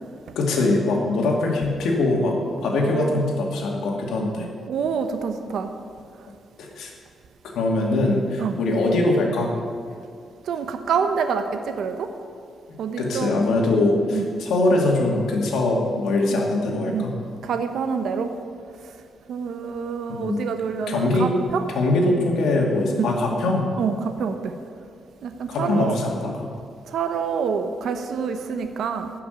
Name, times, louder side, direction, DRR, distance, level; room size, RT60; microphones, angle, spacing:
voice 1, 0.4-2.3 2.6-4.5 6.6-6.9 7.4-9.5 13.0-17.1 20.1-20.5 20.9-21.3 21.7-23.7 25.5-26.3, left 2 dB, 90° left, 0 dB, 2.3 m, -22 dB
voice 2, 4.7-5.7 8.4-8.6 10.4-12.1 12.8-13.4 14.1-14.2 16.3-16.4 16.9-17.1 17.4-18.3 19.3-21.6 23.0-23.1 23.8-24.6 25.2-26.0 26.9-29.1, right 6 dB, 70° right, 7 dB, 0.8 m, -27 dB
12.5 x 6.1 x 9.1 m, 2.2 s
wide cardioid pair, 150°, 0 cm